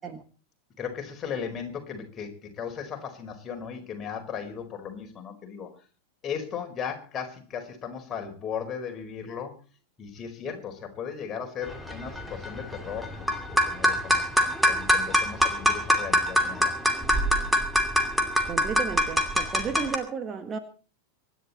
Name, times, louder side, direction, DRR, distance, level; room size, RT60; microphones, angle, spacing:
voice 1, 0.8-5.7 6.2-9.5 10.0-14.2 14.7-16.7, left 7 dB, 25° left, 4.7 m, -36 dB
sound 1, 11.6-20.0, equal, 5° right, 2.6 m, -24 dB
voice 2, 18.5-20.6, right 6 dB, 25° right, 1.6 m, -33 dB
25.0 x 11.0 x 4.3 m
figure-of-eight pair, 90°, 0 cm